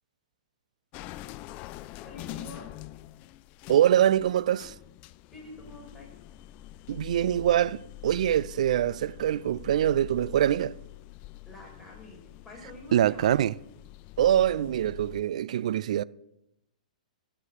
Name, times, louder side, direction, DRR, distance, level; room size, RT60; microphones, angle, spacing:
sound 1, 0.9-15.2, left 17 dB, 35° left, 0.4 m, -45 dB
voice 1, 2.1-2.7 5.3-6.1 11.5-13.4, left 1 dB, ahead, 5.5 m, -47 dB
voice 2, 3.7-4.7 6.9-10.8 12.9-13.5 14.2-16.0, right 11 dB, 60° right, 0.4 m, -24 dB
13.5 x 6.5 x 6.5 m
figure-of-eight pair, 115°, 4 cm